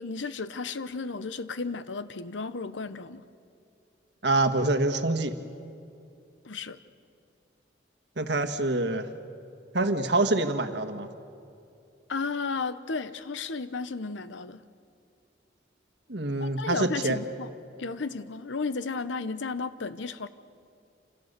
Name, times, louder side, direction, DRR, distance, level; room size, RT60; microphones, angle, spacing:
voice 1, 0.0-3.2 6.4-6.8 12.1-14.6 16.4-17.5 17.8-20.3, left 4 dB, 80° left, 13 dB, 0.9 m, -33 dB
voice 2, 4.2-5.3 8.2-9.1 9.7-11.1 16.1-17.2, right 2 dB, 65° right, 7 dB, 1.5 m, -26 dB
28.0 x 27.0 x 6.8 m, 2.5 s
head